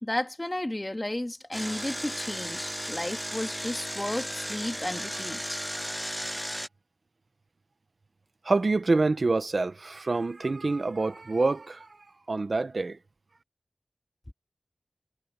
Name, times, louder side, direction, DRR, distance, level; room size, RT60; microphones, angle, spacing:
voice 1, 0.0-5.7, left 1 dB, 25° left, 1.9 m, -33 dB
Engine, 1.5-6.7, equal, 5° right, 0.6 m, -35 dB
voice 2, 8.4-11.9 12.3-13.0, right 3 dB, 65° right, 1.0 m, -26 dB
wide cardioid pair, 60°, 0 cm